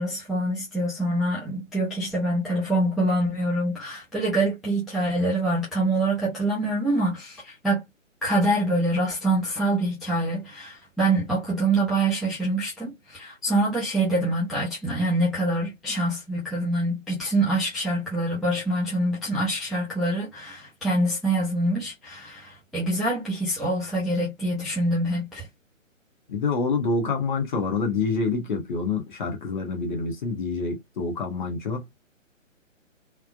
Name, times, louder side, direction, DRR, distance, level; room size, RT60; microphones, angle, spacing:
voice 1, 0.0-7.8 8.2-25.5, right 1 dB, ahead, 0.3 m, -25 dB
voice 2, 26.3-31.9, left 4 dB, 35° left, 1.1 m, -27 dB
3.3 x 2.0 x 2.5 m
figure-of-eight pair, 145°, 40 cm